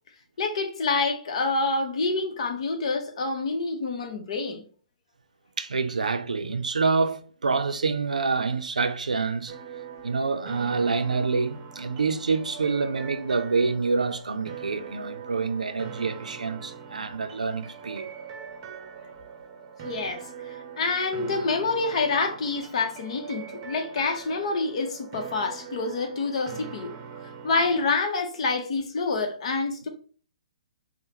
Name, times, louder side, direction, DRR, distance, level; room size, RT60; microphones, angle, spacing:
voice 1, 0.4-4.6 19.8-26.9 27.4-29.9, left 3 dB, 55° left, 0.9 m, -27 dB
voice 2, 5.6-9.5 10.0-18.1, right 4 dB, 85° right, 0.5 m, -27 dB
sound 1, 9.5-27.9, right 7 dB, 30° right, 0.7 m, -42 dB
4.8 x 2.1 x 2.9 m
hypercardioid pair, 135°, 4 cm